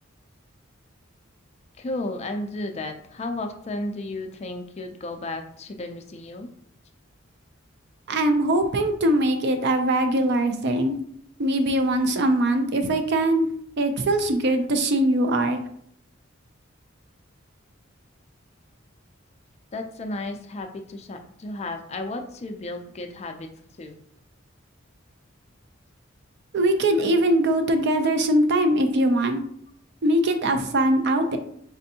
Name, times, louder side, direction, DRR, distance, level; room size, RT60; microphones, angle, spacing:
voice 1, 1.8-6.5 19.7-23.5 23.8-24.0, left 2 dB, 30° left, 6 dB, 0.4 m, -33 dB
voice 2, 8.1-11.0 11.4-13.5 13.8-15.6 26.5-29.4 30.0-31.4, right 1 dB, 55° right, 7 dB, 0.5 m, -21 dB
4.2 x 2.6 x 2.7 m, 0.68 s
head